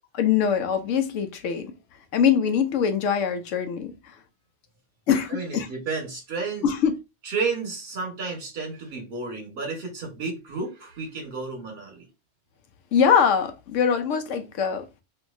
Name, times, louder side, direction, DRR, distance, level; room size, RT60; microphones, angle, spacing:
voice 1, 0.1-1.7 2.1-4.2 5.1-5.7 6.6-6.9 12.9-14.9, left 7 dB, 90° left, 1.0 m, -23 dB
voice 2, 5.3-6.6 7.2-12.1, right 4 dB, 55° right, 1.6 m, -32 dB
2.9 x 2.6 x 2.5 m
omnidirectional pair, 1.3 m